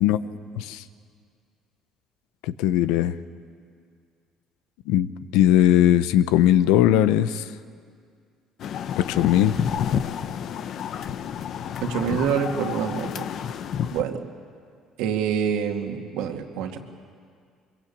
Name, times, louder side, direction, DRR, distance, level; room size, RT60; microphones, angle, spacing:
voice 1, 2.5-3.2 4.9-5.1 5.3-7.4 9.0-9.6, left 12 dB, 85° left, 14 dB, 0.8 m, -19 dB
sound 1, 8.6-14.0, left 8 dB, 60° left, 1.0 m, -29 dB
voice 2, 11.8-13.3 13.9-14.2 15.0-16.8, right 7 dB, 85° right, 3 dB, 2.3 m, -26 dB
23.5 x 22.0 x 8.7 m, 2.2 s
supercardioid pair, 95°, 0 cm